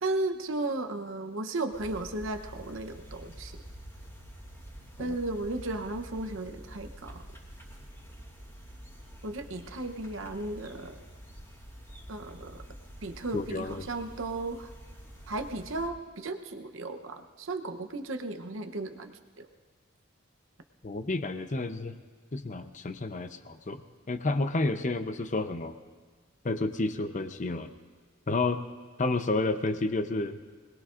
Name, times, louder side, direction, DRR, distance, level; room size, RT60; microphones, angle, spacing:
voice 1, 0.0-3.6 5.0-7.2 9.2-11.0 12.1-12.6 13.0-14.7 15.3-19.5, right 2 dB, 70° right, 7 dB, 0.9 m, -35 dB
sound 1, 1.7-15.9, equal, 15° left, 3.0 m, -48 dB
voice 2, 13.3-13.8 20.8-22.0 22.3-23.8 24.1-25.7 26.4-27.7 28.3-28.6 29.0-30.4, left 2 dB, 35° left, 9 dB, 0.7 m, -30 dB
25.0 x 19.5 x 2.5 m, 1.4 s
head